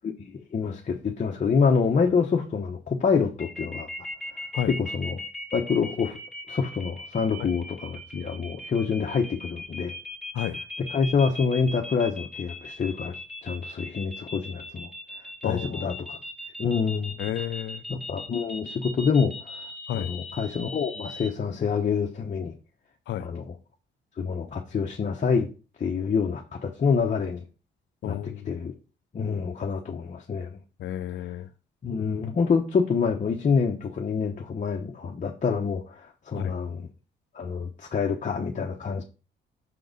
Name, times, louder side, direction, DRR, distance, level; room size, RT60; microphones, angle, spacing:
voice 1, 0.0-3.9 4.7-5.2 5.5-6.2 6.5-9.9 10.8-13.1 13.4-14.9 15.4-16.2 16.6-17.2 17.9-19.7 19.9-22.5 23.2-23.5 24.2-25.5 25.8-27.4 28.0-28.7 29.1-30.6 31.8-36.9 37.3-39.0, left 5 dB, 40° left, 0.9 m, -26 dB
sound 1, 3.4-21.3, left 1 dB, ahead, 2.3 m, -38 dB
voice 2, 15.4-16.0 17.2-17.8 19.9-20.1 23.1-23.3 28.0-28.5 30.8-31.5 36.3-36.5, left 11 dB, 70° left, 0.6 m, -31 dB
5.9 x 3.8 x 5.2 m
cardioid pair, 90°, 20 cm